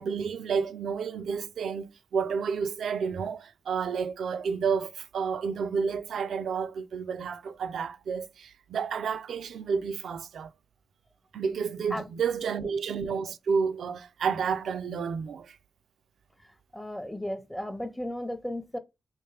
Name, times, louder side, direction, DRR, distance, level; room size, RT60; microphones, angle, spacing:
voice 1, 0.0-10.5 11.3-15.6, right 6 dB, 80° right, 0.3 m, -30 dB
voice 2, 16.7-18.8, left 1 dB, 5° left, 0.6 m, -34 dB
3.4 x 2.5 x 3.2 m
cardioid pair, 55°, 0 cm